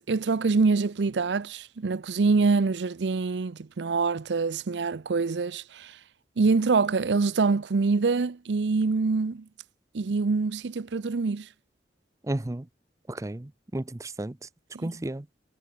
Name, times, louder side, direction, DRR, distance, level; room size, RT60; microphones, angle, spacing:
voice 1, 0.0-6.0 6.4-9.4 9.9-11.5 14.7-14.9, right 4 dB, 80° right, 0.6 m, -25 dB
voice 2, 12.3-12.7 13.1-14.5 14.8-15.3, right 1 dB, 20° right, 0.6 m, -33 dB
head